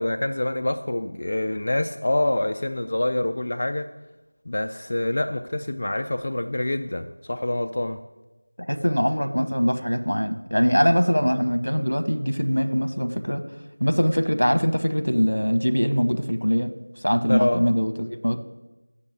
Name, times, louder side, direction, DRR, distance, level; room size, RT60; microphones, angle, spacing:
voice 1, 0.0-3.9 4.5-8.0 17.3-17.6, left 1 dB, 30° left, 7 dB, 0.3 m, -26 dB
voice 2, 8.7-13.4 13.8-16.7 17.0-18.4, equal, 80° left, 9 dB, 1.1 m, -22 dB
7.5 x 6.8 x 8.0 m, 1.1 s
figure-of-eight pair, 175°, 0 cm